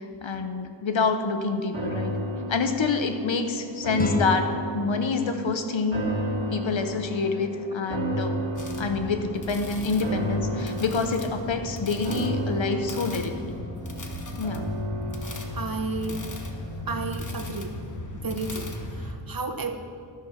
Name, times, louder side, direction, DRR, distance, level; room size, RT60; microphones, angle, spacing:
voice 1, 0.0-2.1 2.5-4.5 4.7-6.1 6.5-8.4 8.8-13.5 14.4-14.6, left 4 dB, 85° left, 6 dB, 1.0 m, -27 dB
sound 1, 1.7-17.0 17.4-17.5, equal, 85° right, 2.3 m, -33 dB
sound 2, 4.0-7.0, left 2 dB, 20° left, 0.7 m, -34 dB
sound 3, 8.6-19.1, left 1 dB, 40° left, 1.2 m, -37 dB
voice 2, 15.5-16.2 16.9-17.7 18.2-18.7 19.0-19.7, right 3 dB, 50° right, 6 dB, 1.0 m, -31 dB
13.0 x 6.8 x 5.9 m, 2.4 s
wide cardioid pair, 80°, 45 cm